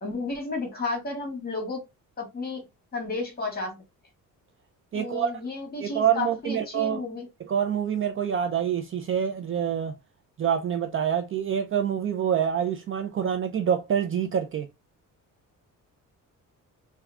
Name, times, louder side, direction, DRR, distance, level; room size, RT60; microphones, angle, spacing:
voice 1, 0.0-1.8 2.2-2.6 2.9-3.8 4.9-7.3, left 3 dB, 25° left, 1.8 m, -32 dB
voice 2, 4.9-5.3 5.8-7.0 7.5-10.0 10.4-14.7, right 8 dB, 40° right, 0.4 m, -26 dB
3.6 x 2.3 x 3.4 m
cardioid pair, 135°, 34 cm